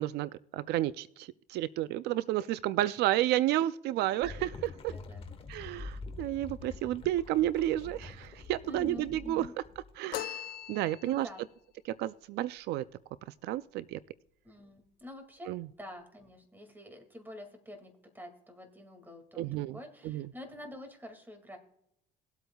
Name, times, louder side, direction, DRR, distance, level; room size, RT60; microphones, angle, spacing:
voice 1, 0.0-4.9 5.5-9.5 10.0-11.3 11.9-12.8 13.4-14.0 15.5-15.7 19.4-19.8 20.0-20.3, right 14 dB, 80° right, 15 dB, 0.4 m, -31 dB
sound 1, 4.2-10.0, left 3 dB, 35° left, 1.3 m, -46 dB
voice 2, 4.9-5.3 8.7-9.5 10.7-11.5 14.4-21.6, left 1 dB, 10° right, 6 dB, 2.2 m, -47 dB
sound 2, 10.1-11.4, left 12 dB, 65° left, 0.5 m, -39 dB
20.0 x 8.0 x 2.3 m, 0.73 s
cardioid pair, 110°, 17 cm